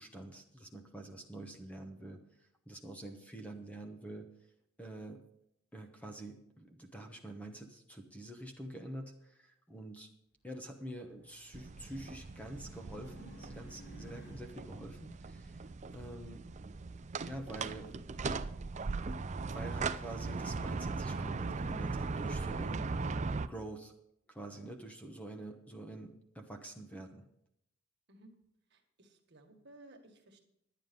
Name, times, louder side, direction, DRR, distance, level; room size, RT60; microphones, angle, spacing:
voice 1, 0.0-4.3 4.8-5.2 5.7-10.1 10.4-15.6 15.9-16.5 17.2-17.9 19.4-22.9 23.5-23.9 24.3-27.2, right 1 dB, 5° left, 4 dB, 0.9 m, -47 dB
Race car auto racing, 10.6-14.9, equal, 50° left, 1.9 m, -56 dB
sound 1, 11.5-23.5, right 4 dB, 35° right, 0.4 m, -39 dB
voice 2, 28.7-30.4, right 1 dB, 50° right, 3 dB, 1.7 m, -58 dB
11.5 x 9.4 x 5.2 m, 0.77 s
head